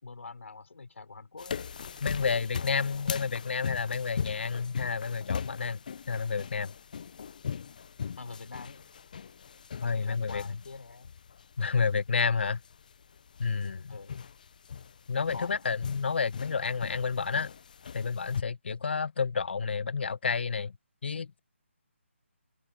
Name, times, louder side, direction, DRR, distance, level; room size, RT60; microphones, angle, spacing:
voice 1, 0.0-1.6 2.2-3.3 8.2-8.9 10.0-11.1 13.9-14.2 15.2-15.7, left 4 dB, 75° left, 4.4 m, -45 dB
sound 1, 1.4-18.4, left 7 dB, 40° left, 0.5 m, -40 dB
voice 2, 2.0-5.8 6.1-6.7 9.8-10.4 11.6-12.6 13.4-14.0 15.1-17.5 17.9-20.7 21.0-21.4, left 5 dB, 55° left, 1.0 m, -30 dB
hypercardioid pair, 170°, 7 cm